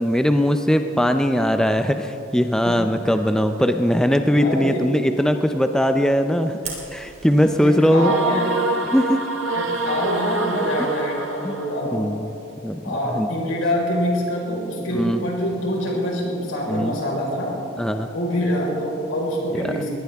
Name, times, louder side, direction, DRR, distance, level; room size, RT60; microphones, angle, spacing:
voice 1, 0.0-8.1 8.9-9.2 11.4-11.6 11.9-12.3 12.6-12.8 13.0-13.3 14.9-15.2 16.7-16.9 17.8-18.1 19.5-19.9, equal, 5° left, 7 dB, 0.5 m, -20 dB
voice 2, 4.3-4.8 7.5-8.5 9.6-12.1 12.8-17.5 18.1-19.9, equal, 90° left, -2 dB, 4.6 m, -25 dB
Fire, 6.6-7.8, right 5 dB, 35° right, 3.1 m, -37 dB
sound 1, 7.9-11.7, right 2 dB, 85° right, 1.5 m, -25 dB
22.5 x 17.5 x 3.5 m, 2.9 s
head